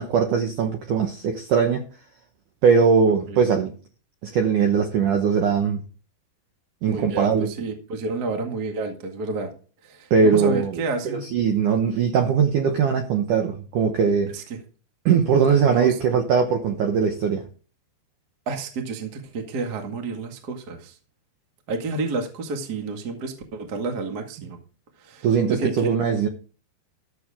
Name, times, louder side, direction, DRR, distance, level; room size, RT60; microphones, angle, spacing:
voice 1, 0.0-1.8 2.6-3.8 4.2-5.8 6.8-7.5 10.1-10.8 11.1-14.4 15.1-17.5 25.2-26.3, right 6 dB, 75° right, 1.9 m, -20 dB
voice 2, 6.9-9.5 9.8-11.3 14.3-14.4 15.7-16.0 18.4-21.0 21.7-24.6 25.0-25.9, right 3 dB, 60° right, 1.0 m, -30 dB
13.5 x 7.9 x 3.6 m
omnidirectional pair, 5.3 m